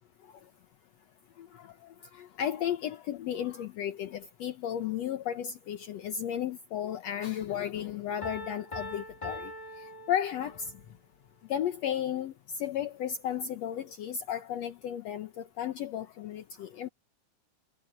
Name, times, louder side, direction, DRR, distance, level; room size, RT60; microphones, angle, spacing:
voice 1, 1.4-9.5 9.8-10.7 11.5-16.9, left 10 dB, 75° left, 1.5 m, -34 dB
Piano, 8.2-10.8, left 1 dB, 40° left, 0.4 m, -42 dB
omnidirectional pair, 4.3 m